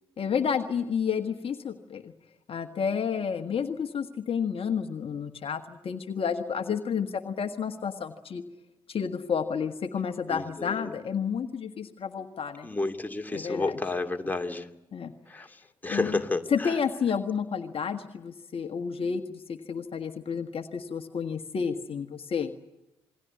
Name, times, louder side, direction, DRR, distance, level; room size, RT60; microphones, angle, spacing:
voice 1, 0.2-2.1 2.5-8.4 8.9-12.7 13.3-13.8 14.9-15.1 15.8-16.2 16.5-22.5, left 6 dB, 45° left, 7 dB, 1.5 m, -30 dB
voice 2, 10.3-10.8 12.6-14.7 15.3-15.5 15.8-16.4, left 2 dB, 15° left, 5 dB, 2.8 m, -30 dB
28.0 x 21.5 x 8.5 m, 0.92 s
hypercardioid pair, 45°, 13 cm